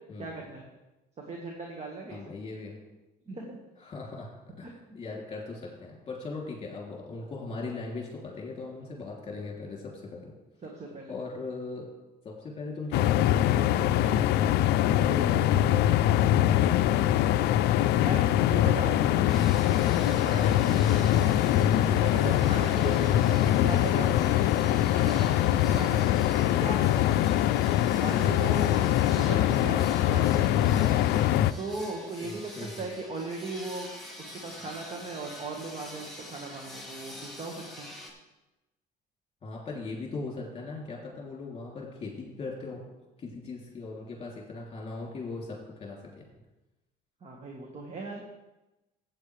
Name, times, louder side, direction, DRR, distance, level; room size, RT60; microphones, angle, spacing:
voice 1, 0.2-0.6 1.3-2.3 3.3-3.6 10.6-11.1 17.9-19.6 20.0-21.5 21.8-23.4 23.6-24.1 24.9-26.2 26.6-27.1 28.0-28.7 29.1-30.9 31.6-32.5 32.8-33.9 34.2-37.9 47.2-48.2, right 3 dB, 40° right, 0 dB, 1.7 m, -38 dB
voice 2, 2.1-2.8 3.8-10.3 11.1-11.9 12.2-15.9 23.4-24.0 32.2-32.9 39.4-42.8 43.2-46.2, left 3 dB, 35° left, -2 dB, 3.1 m, -39 dB
sound 1, 12.9-31.5, left 12 dB, 80° left, 0.4 m, -23 dB
Sierra en empresa, 19.3-38.1, left 1 dB, ahead, 2.8 m, -46 dB
14.5 x 8.6 x 3.4 m, 1.0 s
cardioid pair, 110°, 17 cm